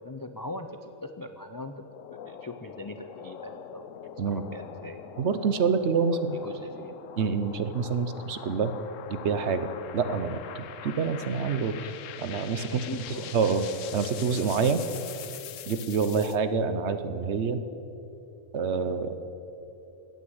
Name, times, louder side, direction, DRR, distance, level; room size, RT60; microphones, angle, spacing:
voice 1, 0.0-1.8 2.1-3.8 4.2-5.0 6.1-7.0 12.7-13.3, left 2 dB, 35° left, 7 dB, 0.3 m, -41 dB
sound 1, 1.8-16.4, left 9 dB, 70° left, 1.0 m, -43 dB
voice 2, 5.2-6.4 7.2-8.7 9.1-9.7 9.9-11.7 12.2-12.7 13.3-13.6 13.9-14.8 15.7-17.6 18.5-19.2, right 5 dB, 60° right, 10 dB, 1.0 m, -27 dB
17.5 x 9.5 x 7.9 m, 3.0 s
omnidirectional pair, 1.4 m